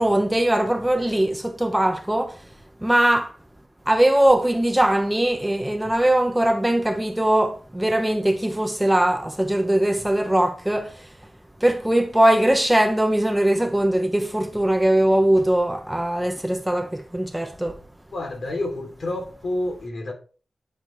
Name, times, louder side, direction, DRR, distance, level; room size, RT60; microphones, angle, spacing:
voice 1, 0.0-2.4 2.8-3.3 3.9-11.1 11.6-17.8, right 1 dB, 10° right, 0.8 m, -21 dB
voice 2, 18.1-20.1, left 2 dB, 65° left, 2.8 m, -29 dB
10.5 x 5.9 x 3.1 m
cardioid pair, 65°, 0 cm